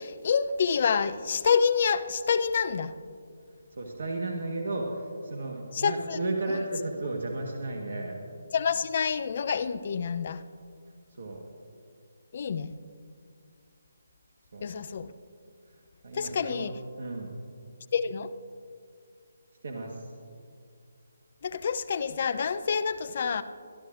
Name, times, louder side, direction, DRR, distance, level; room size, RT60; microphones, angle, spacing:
voice 1, 0.0-2.9 5.7-6.2 6.5-6.6 8.5-10.4 12.3-12.7 14.6-15.1 16.1-16.7 17.9-18.3 21.4-23.4, left 6 dB, 45° left, 14 dB, 0.5 m, -27 dB
voice 2, 3.7-8.2 11.1-11.4 14.5-14.7 16.0-16.7 17.0-17.4 19.6-20.1, right 2 dB, 55° right, 1 dB, 1.3 m, -34 dB
24.5 x 11.5 x 2.5 m, 2.3 s
figure-of-eight pair, 150°, 0 cm